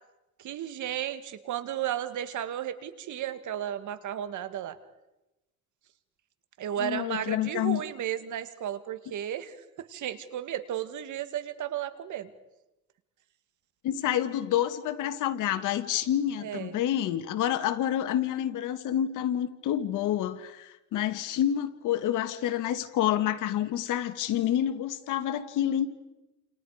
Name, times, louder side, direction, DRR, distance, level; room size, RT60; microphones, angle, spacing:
voice 1, 0.4-4.8 6.6-12.3 16.4-16.8, right 10 dB, 75° right, 10 dB, 2.2 m, -34 dB
voice 2, 6.8-7.8 13.8-25.9, left 11 dB, 90° left, 8 dB, 2.0 m, -28 dB
29.5 x 28.5 x 5.1 m, 0.99 s
cardioid pair, 90°, 30 cm